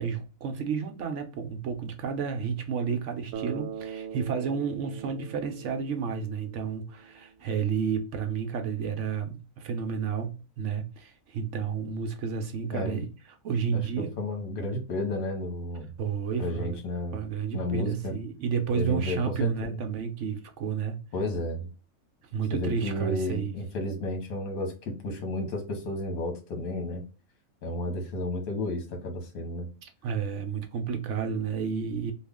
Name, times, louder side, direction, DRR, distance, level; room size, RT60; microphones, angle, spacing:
voice 1, 0.0-13.1 13.4-14.1 16.0-16.8 17.1-21.0 22.3-23.6 29.8-32.1, right 6 dB, 65° right, 0.8 m, -31 dB
Bass guitar, 3.3-7.5, right 7 dB, 90° right, 1.1 m, -41 dB
voice 2, 14.2-15.9 16.4-17.2 17.5-18.1 18.7-19.8 21.1-21.7 22.5-27.0 27.6-29.7, left 1 dB, 75° left, 1.5 m, -32 dB
3.1 x 2.4 x 3.4 m
omnidirectional pair, 1.5 m